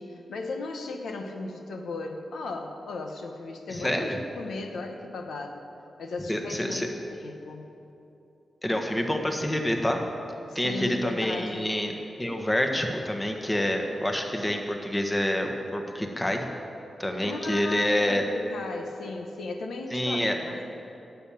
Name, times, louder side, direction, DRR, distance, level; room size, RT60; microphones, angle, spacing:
voice 1, 0.0-5.6 6.0-7.7 10.5-11.7 17.1-20.7, left 3 dB, 85° left, 3 dB, 1.1 m, -36 dB
voice 2, 3.7-4.2 6.3-6.9 8.6-10.0 10.5-11.9 12.2-16.5 17.0-18.2 19.9-20.3, left 1 dB, 15° left, 3 dB, 1.4 m, -27 dB
12.0 x 7.2 x 9.2 m, 2.8 s
cardioid pair, 70°, 0 cm